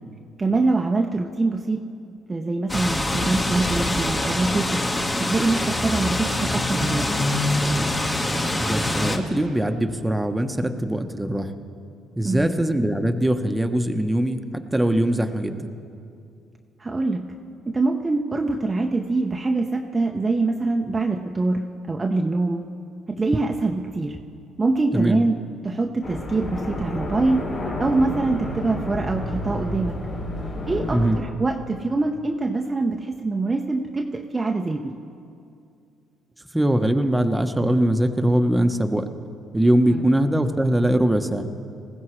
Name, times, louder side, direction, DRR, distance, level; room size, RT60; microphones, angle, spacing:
voice 1, 0.4-1.8 2.3-4.8 5.3-7.1 12.2-12.5 16.8-17.2 17.7-22.6 23.1-24.2 24.6-27.4 27.8-30.0 30.7-34.9 39.9-40.0, right 3 dB, 25° right, 3 dB, 0.8 m, -24 dB
sound 1, 2.7-9.2, left 1 dB, 20° left, 1.6 m, -24 dB
voice 2, 8.5-11.5 12.2-15.7 24.9-25.2 30.9-31.2 36.5-39.1 39.5-41.5, right 1 dB, 10° right, 6 dB, 1.1 m, -22 dB
sound 2, 26.0-31.2, left 1 dB, 55° left, 3.6 m, -30 dB
20.0 x 15.0 x 3.3 m, 2.4 s
hypercardioid pair, 55°, 0 cm